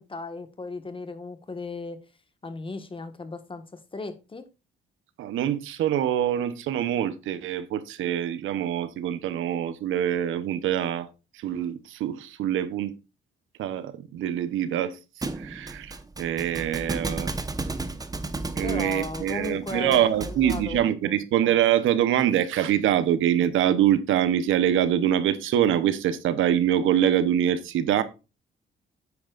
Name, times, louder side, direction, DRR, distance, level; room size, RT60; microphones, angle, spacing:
voice 1, 0.0-2.0 2.4-4.5 18.6-21.2, left 3 dB, 25° left, 1.5 m, -36 dB
voice 2, 5.2-11.1 11.3-12.9 13.6-15.0 15.4-17.3 18.5-28.0, right 10 dB, 80° right, 1.0 m, -24 dB
Thump thud, 15.2-20.8, right 2 dB, 20° right, 1.0 m, -33 dB
9.5 x 8.6 x 2.5 m
cardioid pair, 90°, 20 cm